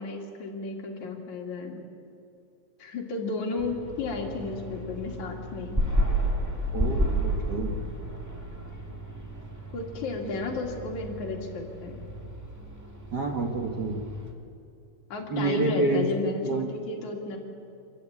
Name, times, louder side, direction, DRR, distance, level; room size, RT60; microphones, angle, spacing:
voice 1, 0.0-1.8 2.8-5.8 9.7-12.0 15.1-17.4, left 3 dB, 60° left, 0 dB, 3.7 m, -33 dB
sound 1, 3.6-14.3, equal, 10° right, 0.8 m, -32 dB
voice 2, 6.7-7.8 13.1-14.0 15.3-16.7, right 3 dB, 70° right, 2 dB, 0.9 m, -28 dB
26.5 x 14.0 x 8.9 m, 2.6 s
omnidirectional pair, 4.0 m